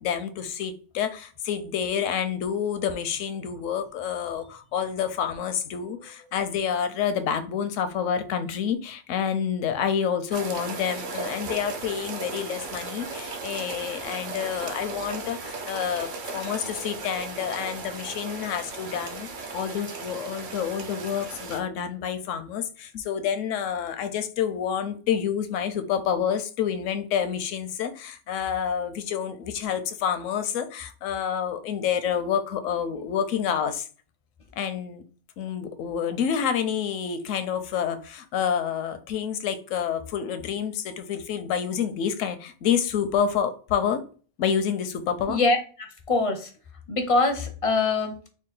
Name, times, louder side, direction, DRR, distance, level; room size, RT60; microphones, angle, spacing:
voice 1, 0.0-19.3 19.5-33.9 34.6-35.0 35.4-44.0 44.4-45.4, left 8 dB, 80° left, 0.9 m, -28 dB
sound 1, 10.3-21.6, right 3 dB, 50° right, 0.6 m, -36 dB
voice 2, 45.3-46.5 46.9-48.1, left 3 dB, 45° left, 0.4 m, -24 dB
3.6 x 2.2 x 3.9 m
omnidirectional pair, 1.3 m